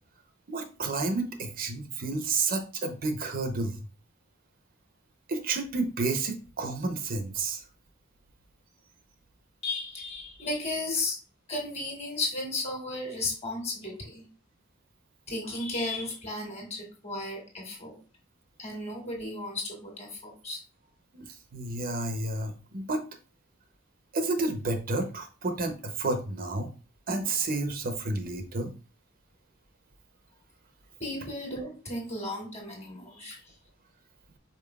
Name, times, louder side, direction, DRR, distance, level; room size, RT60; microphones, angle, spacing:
voice 1, 0.5-3.9 5.3-7.6 21.1-23.0 24.1-26.7 27.1-28.7, right 3 dB, 45° right, 7 dB, 0.6 m, -30 dB
voice 2, 9.6-11.2 11.5-14.2 15.3-18.0 18.6-20.6 31.0-33.4, left 2 dB, 35° left, 0 dB, 1.8 m, -34 dB
5.2 x 4.5 x 2.3 m, 0.35 s
head